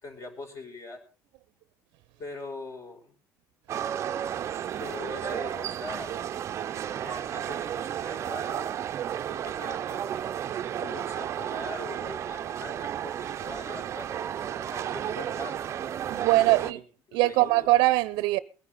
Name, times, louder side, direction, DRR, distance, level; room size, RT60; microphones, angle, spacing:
voice 1, 0.0-1.0 2.2-3.1 4.8-6.1 7.0-8.7 9.3-10.0 10.7-14.1 14.3-15.6 16.4-16.8 17.1-17.7, left 2 dB, 40° left, 4.9 m, -42 dB
sound 1, 3.7-16.7, right 10 dB, 40° right, 0.6 m, -33 dB
voice 2, 16.1-16.8 17.1-18.4, right 18 dB, 85° right, 0.6 m, -22 dB
22.5 x 9.9 x 4.1 m
cardioid pair, 145°, 8 cm